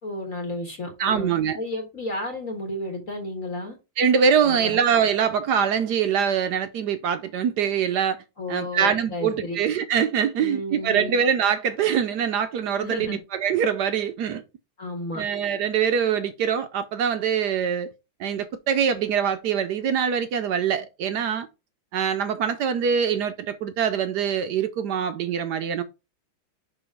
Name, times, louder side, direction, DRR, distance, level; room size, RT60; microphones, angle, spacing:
voice 1, 0.0-3.8 4.4-4.8 8.4-9.6 10.4-11.2 12.8-13.2 14.8-15.2, left 1 dB, 45° left, 1.6 m, -32 dB
voice 2, 1.0-1.6 4.0-8.2 8.5-14.4 15.1-17.9 18.2-21.5 21.9-25.8, right 7 dB, 70° right, 1.0 m, -24 dB
5.9 x 4.1 x 4.6 m
omnidirectional pair, 2.2 m